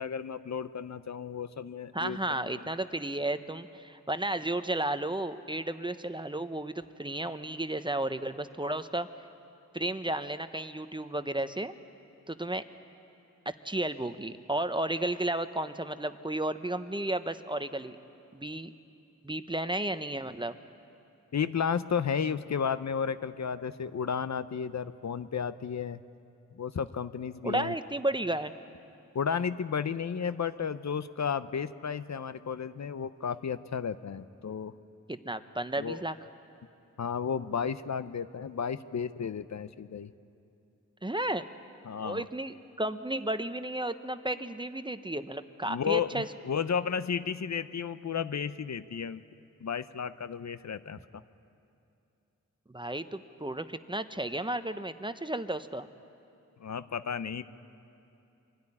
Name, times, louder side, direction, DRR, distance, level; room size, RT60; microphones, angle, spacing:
voice 1, 0.0-2.5 21.3-26.0 26.5-27.7 29.1-34.7 35.8-36.0 37.0-40.1 41.8-42.3 45.7-49.2 49.6-51.2 56.6-57.4, left 7 dB, 55° left, 13 dB, 0.7 m, -33 dB
voice 2, 1.9-9.1 9.7-11.7 12.3-12.6 13.5-18.0 18.3-18.7 19.2-20.6 27.4-28.5 35.1-36.2 41.0-41.5 42.0-46.3 52.7-55.9, right 1 dB, 15° right, 11 dB, 0.8 m, -33 dB
24.5 x 12.5 x 9.9 m, 2.7 s
cardioid pair, 60°, 33 cm